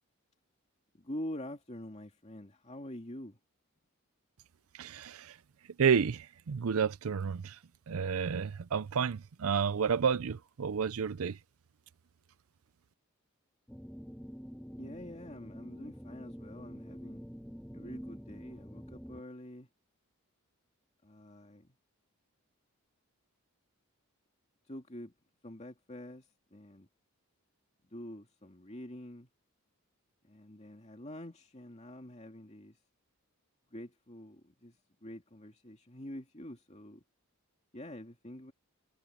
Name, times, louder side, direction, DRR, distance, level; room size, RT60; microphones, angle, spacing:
voice 1, 1.0-3.4 14.8-17.2 17.7-19.7 21.0-21.7 24.7-25.1 25.4-26.2 26.5-26.9 27.9-29.3 30.2-32.8 33.7-37.0 37.7-38.5, left 1 dB, 30° left, 2.5 m, -46 dB
voice 2, 4.7-5.4 5.8-7.6 7.9-11.4, right 6 dB, 70° right, 0.5 m, -30 dB
sound 1, 13.7-19.2, equal, 5° left, 1.4 m, -47 dB
head